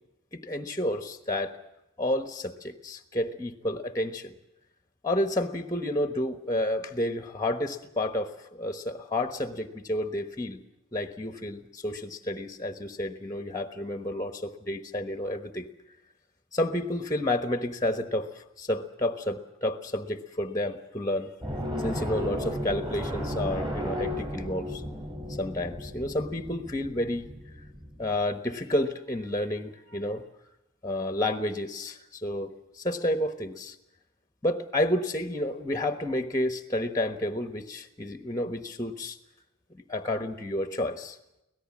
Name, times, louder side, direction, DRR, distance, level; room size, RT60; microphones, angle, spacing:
voice 1, 0.3-1.6 2.0-4.3 5.0-10.6 10.9-15.7 16.5-21.3 21.8-24.8 25.3-27.3 28.0-30.2 30.8-33.8 34.4-39.2 39.7-41.2, left 1 dB, 15° left, 9 dB, 1.2 m, -30 dB
sound 1, 21.4-28.2, equal, 20° right, 6.5 m, -34 dB
25.0 x 18.0 x 7.4 m, 0.89 s
head